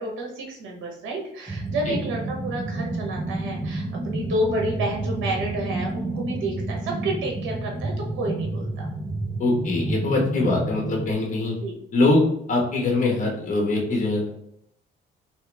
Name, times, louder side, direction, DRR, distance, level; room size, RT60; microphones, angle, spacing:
voice 1, 0.0-8.9 11.6-11.8, right 1 dB, 80° right, 0 dB, 0.9 m, -30 dB
sound 1, 1.5-11.1, right 2 dB, 15° right, 0.4 m, -30 dB
voice 2, 9.4-11.5 11.9-14.3, left 2 dB, 40° left, -1 dB, 1.1 m, -22 dB
3.0 x 2.8 x 3.3 m, 0.74 s
cardioid pair, 90°, 20 cm